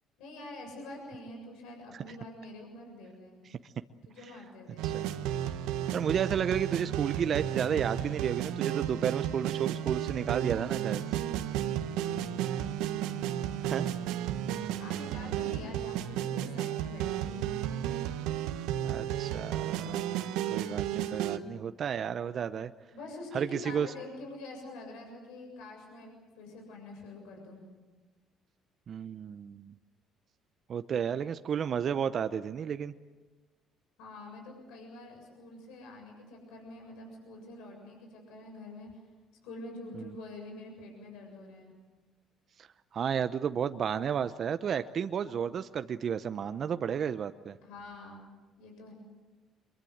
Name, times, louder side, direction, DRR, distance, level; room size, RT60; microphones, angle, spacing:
voice 1, 0.2-3.5 4.1-4.9 14.8-18.0 22.9-27.6 34.0-38.9 39.4-41.7 47.6-48.3 48.6-48.9, left 2 dB, 80° left, 2 dB, 7.3 m, -46 dB
sound 1, 4.8-21.4, right 11 dB, 80° right, 1.3 m, -33 dB
voice 2, 5.9-11.2 13.6-13.9 18.8-22.7 23.3-23.9 28.9-29.8 30.7-32.9 40.0-40.1 42.6-47.6, right 8 dB, 55° right, 10 dB, 0.8 m, -32 dB
24.5 x 23.0 x 8.0 m, 1.3 s
supercardioid pair, 70°, 0 cm